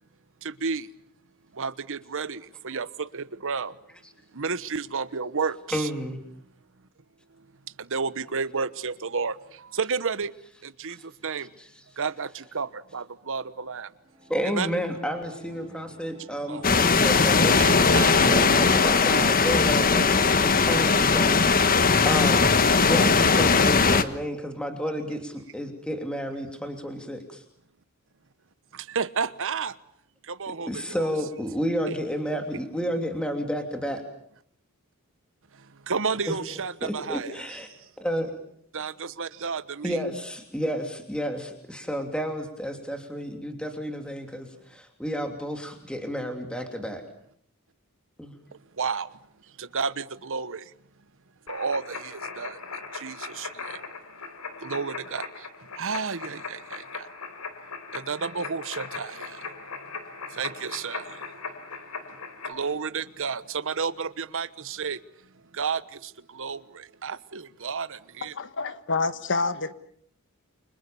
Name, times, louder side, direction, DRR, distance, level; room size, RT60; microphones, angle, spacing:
voice 1, 1.6-3.7 4.4-5.9 7.9-9.4 9.7-10.3 10.6-11.0 11.2-11.5 12.0-13.9 14.4-14.7 16.5-16.6 17.6-18.2 28.9-29.7 30.3-31.1 31.9-32.0 35.9-37.6 38.7-40.0 48.8-49.1 49.6-50.6 51.5-52.6 53.0-53.5 54.6-55.2 55.8-56.8 57.9-59.2 60.4-61.0 62.5-65.0 65.6-65.8 66.3-66.6 67.0-68.3, right 5 dB, 60° right, 1.2 m, -31 dB
voice 2, 5.7-6.2 10.9-11.0 11.4-11.5 14.3-17.6 18.1-21.4 22.0-22.5 22.9-27.4 30.7-34.0 36.8-37.7 38.0-38.3 39.8-47.0 48.2-48.3, equal, 5° left, 3.1 m, -31 dB
sound 1, 14.0-20.4, right 1 dB, 25° right, 4.6 m, -47 dB
sound 2, 16.6-24.0, left 4 dB, 40° left, 1.4 m, -19 dB
sound 3, 51.5-62.5, left 4 dB, 85° left, 3.9 m, -39 dB
voice 3, 68.6-69.7, left 3 dB, 55° left, 1.5 m, -27 dB
29.5 x 25.5 x 7.1 m
head